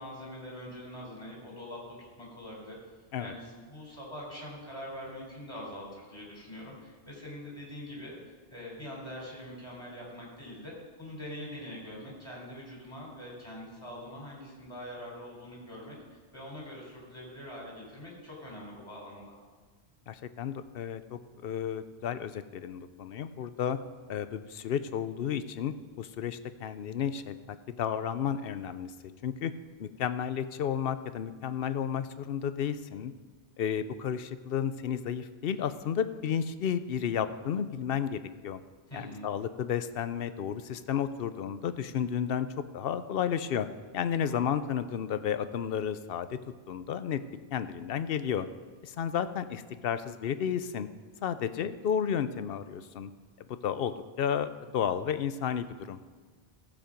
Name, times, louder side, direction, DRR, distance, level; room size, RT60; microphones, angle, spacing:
voice 1, 0.0-2.8 3.2-8.2 8.5-16.0 16.3-19.3 38.9-39.3 44.2-44.5, left 1 dB, 25° left, -4 dB, 3.8 m, -44 dB
voice 2, 20.1-23.8 24.1-27.3 27.7-28.9 29.2-29.5 29.8-33.1 33.6-38.6 38.9-42.5 42.7-43.7 43.9-46.4 46.7-47.2 47.5-48.5 48.8-50.9 51.2-53.1 53.5-56.0, left 8 dB, 70° left, 12 dB, 0.8 m, -32 dB
15.5 x 7.4 x 5.1 m, 1.4 s
omnidirectional pair, 1.1 m